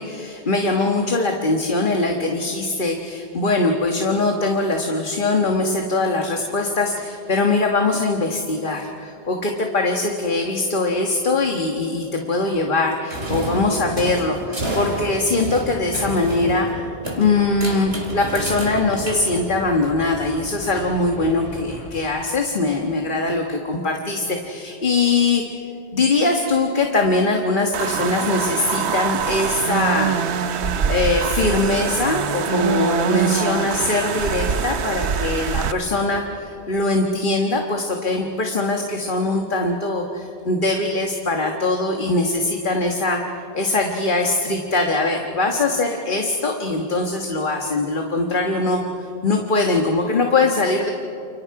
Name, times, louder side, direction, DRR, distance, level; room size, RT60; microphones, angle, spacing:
voice 1, 0.0-16.9 17.2-25.4 25.9-30.4 30.9-43.2 43.5-48.8 49.2-50.9, left 2 dB, 50° left, 2 dB, 1.6 m, -22 dB
sound 1, 13.1-19.8, right 1 dB, 70° right, 3.6 m, -29 dB
Wind, 17.4-22.9, left 1 dB, 65° left, 5.2 m, -39 dB
sound 2, 27.7-35.7, right 7 dB, 90° right, 1.1 m, -24 dB
29.5 x 29.0 x 4.8 m, 2.7 s
omnidirectional pair, 1.1 m